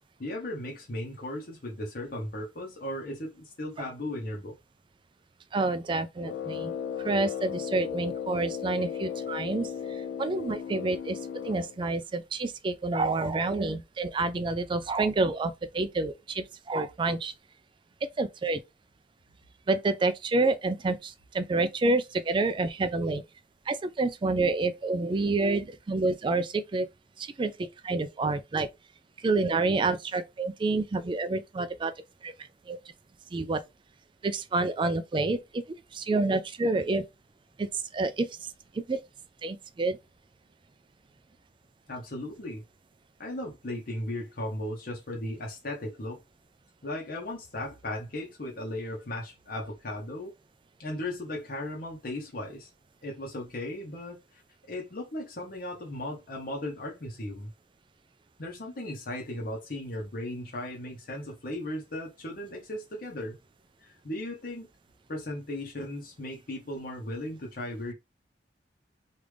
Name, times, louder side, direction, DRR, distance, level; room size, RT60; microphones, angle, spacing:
voice 1, 0.2-4.6 41.9-42.6 43.2-46.2 46.8-50.3 50.8-52.7 53.0-54.4 54.7-57.5 58.4-63.4 63.8-64.7 65.1-67.9, left 1 dB, 50° left, 0.8 m, -36 dB
voice 2, 5.5-6.7 7.0-9.7 10.2-11.2 11.4-17.3 18.0-18.6 19.7-23.2 23.7-26.9 27.2-28.7 29.2-31.9 32.2-32.3 32.7-32.8 33.3-33.6 34.2-35.6 35.9-37.0 37.6-38.5 38.7-39.0 39.4-40.0, right 3 dB, 25° right, 0.3 m, -28 dB
Brass instrument, 6.2-11.8, left 7 dB, 80° left, 0.4 m, -35 dB
3.2 x 2.5 x 3.3 m
head